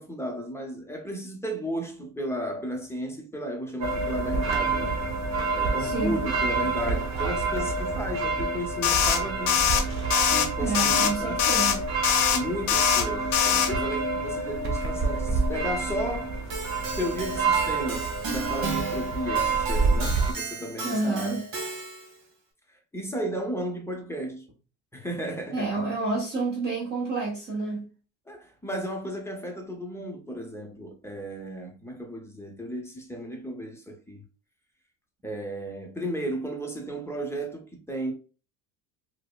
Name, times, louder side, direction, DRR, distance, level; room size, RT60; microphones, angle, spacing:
voice 1, 0.0-5.0 5.5-9.8 10.3-11.4 12.3-16.4 17.0-21.4 22.7-24.5 24.9-25.8 28.3-34.2 35.2-38.1, equal, 5° left, 0.6 m, -34 dB
sound 1, 3.8-20.3, right 3 dB, 40° right, 1.1 m, -28 dB
voice 2, 5.8-6.2 10.6-11.9 20.8-21.4 25.5-27.9, right 3 dB, 25° right, 0.9 m, -29 dB
sound 2, 8.8-9.2 9.5-9.8 10.1-10.5 10.7-11.1 11.4-11.8 12.0-12.4 12.7-13.0 13.3-13.7, left 9 dB, 75° left, 0.8 m, -22 dB
Keyboard (musical), 16.5-22.2, right 4 dB, 55° right, 1.6 m, -35 dB
4.8 x 2.1 x 2.3 m
cardioid pair, 125°, 41 cm